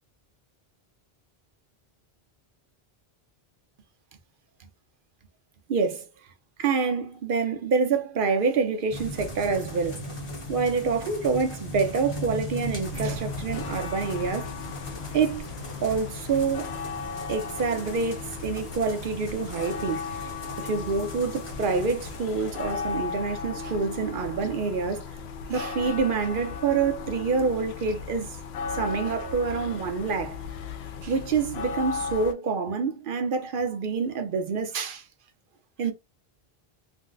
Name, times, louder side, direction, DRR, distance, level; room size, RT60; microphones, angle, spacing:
voice 1, 5.7-6.0 6.6-10.1 10.5-14.5 15.1-15.5 15.8-16.7 17.3-20.3 20.6-25.0 25.5-28.3 28.7-30.4 31.0-35.0 35.8-35.9, right 5 dB, 60° right, 0.8 m, -27 dB
sound 1, 8.9-23.0, left 1 dB, 35° left, 0.8 m, -38 dB
sound 2, 12.9-32.3, left 5 dB, 80° left, 0.8 m, -36 dB
2.6 x 2.0 x 3.8 m
omnidirectional pair, 1.1 m